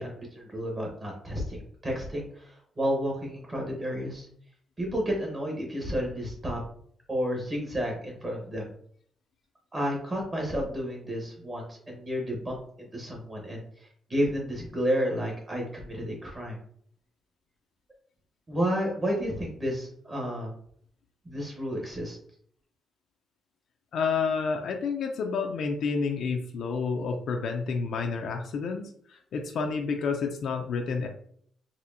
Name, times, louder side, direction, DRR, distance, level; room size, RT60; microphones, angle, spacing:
voice 1, 0.0-4.3 4.8-6.6 7.1-8.7 9.7-13.6 14.1-16.6 18.5-20.5 21.2-22.2, equal, 25° right, -1 dB, 1.0 m, -31 dB
voice 2, 23.9-31.1, left 5 dB, 65° left, 3 dB, 0.4 m, -29 dB
4.2 x 2.7 x 2.6 m, 0.62 s
cardioid pair, 130°, 0 cm